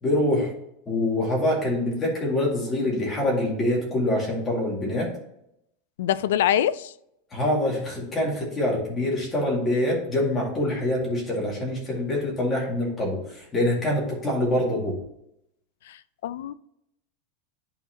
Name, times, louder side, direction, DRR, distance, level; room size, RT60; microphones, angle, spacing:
voice 1, 0.0-0.5 0.9-5.1 7.3-15.0, left 1 dB, 15° left, 2.1 m, -25 dB
voice 2, 6.0-6.9 15.9-16.5, left 11 dB, 75° left, 0.4 m, -24 dB
10.5 x 4.2 x 2.9 m
supercardioid pair, 175°, 0 cm